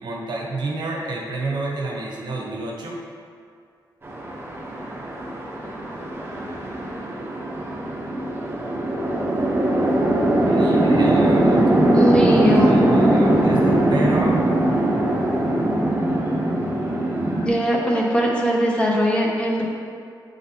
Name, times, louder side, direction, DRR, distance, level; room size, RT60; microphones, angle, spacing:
voice 1, 0.0-3.0 10.4-11.6 12.3-14.4, right 2 dB, 70° right, -2 dB, 0.9 m, -29 dB
Chatter / Traffic noise roadway noise / Train, 4.0-17.5, right 1 dB, 30° right, 0.7 m, -20 dB
voice 2, 11.9-12.7 17.4-19.6, equal, 15° left, -3 dB, 0.7 m, -20 dB
8.4 x 4.0 x 2.8 m, 2.3 s
wide cardioid pair, 160°, 8 cm